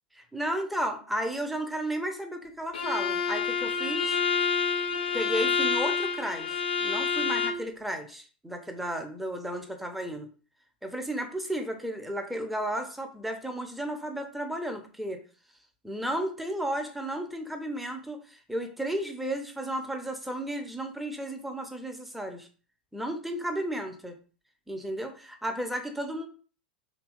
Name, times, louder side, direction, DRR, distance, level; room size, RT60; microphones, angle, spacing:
voice 1, 0.2-4.2 5.1-10.3 10.8-15.2 15.8-22.5 22.9-24.2 24.7-26.3, right 1 dB, ahead, 5 dB, 0.4 m, -33 dB
Bowed string instrument, 2.7-7.7, left 5 dB, 65° left, 0.4 m, -28 dB
2.7 x 2.2 x 2.3 m, 0.38 s
figure-of-eight pair, 90°, 5 cm